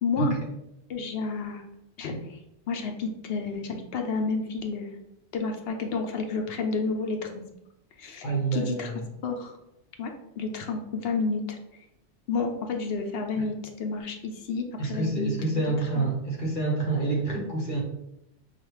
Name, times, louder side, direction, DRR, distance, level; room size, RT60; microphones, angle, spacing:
voice 1, 0.0-0.4 0.9-1.6 2.0-2.4 2.7-4.9 5.3-7.3 8.0-8.3 8.5-8.9 9.2-9.6 10.0-11.6 12.3-15.3 16.0-16.1, left 4 dB, 65° left, 4 dB, 0.7 m, -30 dB
voice 2, 8.2-9.0 13.4-13.5 14.8-17.8, right 3 dB, 45° left, -1 dB, 1.1 m, -27 dB
5.0 x 2.3 x 3.0 m, 0.81 s
omnidirectional pair, 1.2 m